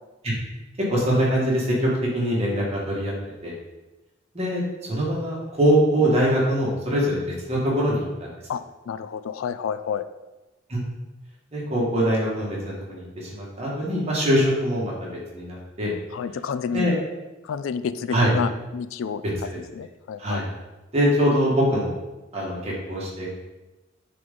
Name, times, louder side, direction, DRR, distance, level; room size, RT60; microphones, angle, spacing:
voice 1, 0.9-3.1 3.4-3.5 4.3-4.6 4.9-7.2 7.5-8.3 10.7-10.8 11.5-15.9 16.7-16.9 18.1-18.3 20.2-20.4 20.9-21.9 22.3-23.3, equal, 30° right, -5 dB, 1.8 m, -23 dB
voice 2, 8.5-10.1 16.1-16.9 17.4-19.2 19.5-20.4, left 6 dB, 75° left, 13 dB, 0.3 m, -30 dB
7.7 x 3.9 x 3.7 m, 1.1 s
head